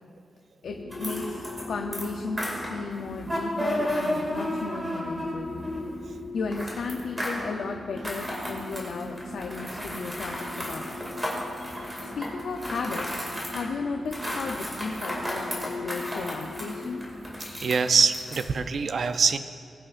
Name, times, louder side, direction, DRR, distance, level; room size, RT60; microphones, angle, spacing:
voice 1, 0.6-5.6 6.3-11.0 12.0-17.0, left 4 dB, 75° left, 2 dB, 0.6 m, -35 dB
sound 1, 0.6-18.8, left 2 dB, 55° left, 1.9 m, -40 dB
sound 2, 0.9-1.6 1.9-5.9 6.5-7.5 8.0-13.7 14.1-18.4, equal, 10° right, 2.3 m, -33 dB
voice 2, 17.6-19.4, right 5 dB, 50° right, 10 dB, 0.4 m, -23 dB
21.0 x 8.8 x 2.5 m, 2.5 s
wide cardioid pair, 170°, 0 cm